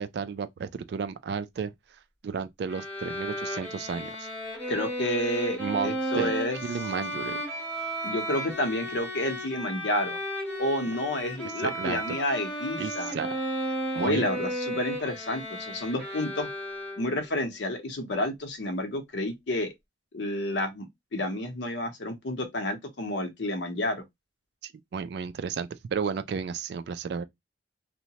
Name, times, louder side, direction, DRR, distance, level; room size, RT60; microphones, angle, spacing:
voice 1, 0.0-1.7 2.2-4.3 5.6-6.3 6.6-7.4 11.6-12.2 12.8-13.4 13.9-14.3 24.6-27.2, right 6 dB, 65° right, 0.3 m, -33 dB
Bowed string instrument, 2.7-17.3, equal, 10° left, 0.9 m, -34 dB
voice 2, 4.7-6.6 8.0-10.2 10.6-13.1 14.0-16.5 17.0-19.7 20.1-20.9 21.1-24.0, left 1 dB, 80° left, 0.7 m, -30 dB
2.8 x 2.1 x 2.8 m
head